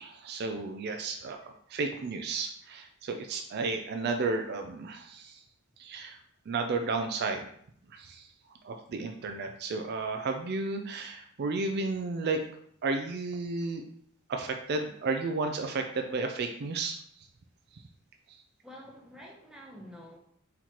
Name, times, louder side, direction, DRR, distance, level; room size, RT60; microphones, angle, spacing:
voice 1, 0.0-5.4 5.8-6.2 6.5-7.5 7.9-8.3 8.6-12.4 12.8-13.8 14.3-17.3 17.7-17.8 18.3-18.4, right 3 dB, 50° right, 5 dB, 0.4 m, -33 dB
voice 2, 18.6-20.2, equal, 5° right, -2 dB, 0.8 m, -48 dB
4.4 x 4.0 x 3.0 m, 0.66 s
head